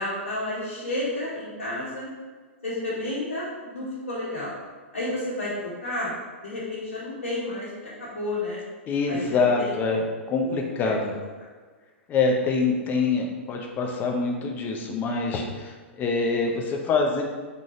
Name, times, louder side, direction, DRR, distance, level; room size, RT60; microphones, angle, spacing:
voice 1, 0.0-2.1 2.6-4.5 4.9-6.1 6.4-8.6 9.1-9.7 10.4-10.9, left 1 dB, 75° left, -11 dB, 1.4 m, -31 dB
voice 2, 8.9-11.1 12.1-17.2, left 4 dB, 25° left, 1 dB, 0.7 m, -25 dB
4.0 x 3.7 x 3.2 m, 1.4 s
figure-of-eight pair, 105°, 7 cm